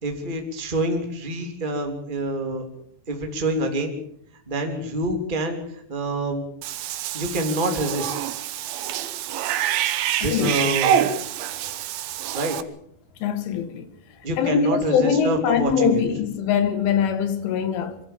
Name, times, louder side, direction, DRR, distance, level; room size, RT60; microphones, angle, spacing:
voice 1, 0.0-2.6 3.1-4.0 4.5-5.6 5.9-6.4 7.1-8.1 10.2-10.9 12.3-12.6 14.2-16.0, right 1 dB, 15° right, 2.1 m, -26 dB
Cat / Bathtub (filling or washing), 6.6-12.6, right 10 dB, 80° right, 2.1 m, -26 dB
voice 2, 10.2-10.5 13.2-13.9 14.4-18.0, left 7 dB, 75° left, 4.0 m, -22 dB
24.0 x 16.0 x 7.4 m
omnidirectional pair, 5.9 m